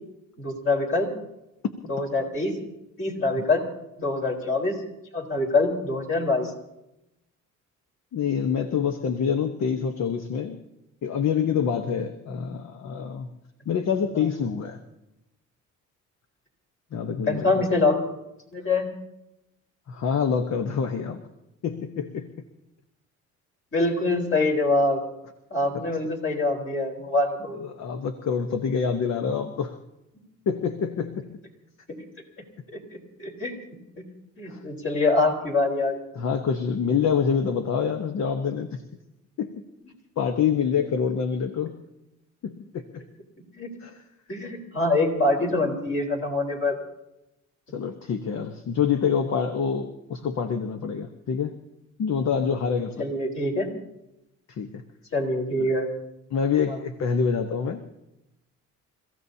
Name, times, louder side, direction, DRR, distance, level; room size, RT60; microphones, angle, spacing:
voice 1, 0.4-1.1 1.9-2.6 3.0-3.6 4.0-4.8 5.1-6.5 14.1-14.2 17.3-18.0 18.5-18.9 23.7-25.0 25.5-27.6 32.7-33.6 34.0-34.1 34.4-36.0 40.3-40.4 43.5-43.7 44.3-46.8 53.0-53.7 55.1-55.9 56.7-56.8, left 2 dB, 45° left, 0 dB, 4.3 m, -24 dB
voice 2, 8.1-10.6 11.0-13.3 13.7-14.8 16.9-17.6 19.9-21.2 21.6-22.3 27.6-29.7 30.5-31.4 34.5-34.6 36.1-38.8 39.4-39.5 40.2-41.8 42.4-43.0 43.8-44.0 47.7-51.6 52.0-53.0 54.5-54.8 56.3-57.8, left 6 dB, 60° left, 6 dB, 1.1 m, -26 dB
29.5 x 15.5 x 2.8 m, 0.91 s
cardioid pair, 90°, 30 cm